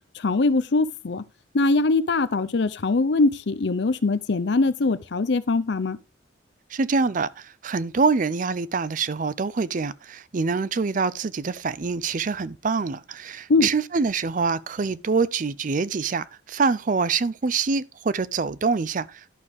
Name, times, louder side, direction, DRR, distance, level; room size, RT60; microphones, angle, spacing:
voice 1, 0.1-1.2 1.5-6.0 13.5-13.7, left 3 dB, 65° left, 0.6 m, -22 dB
voice 2, 6.7-19.3, right 4 dB, 45° right, 0.5 m, -25 dB
11.0 x 6.5 x 3.5 m
head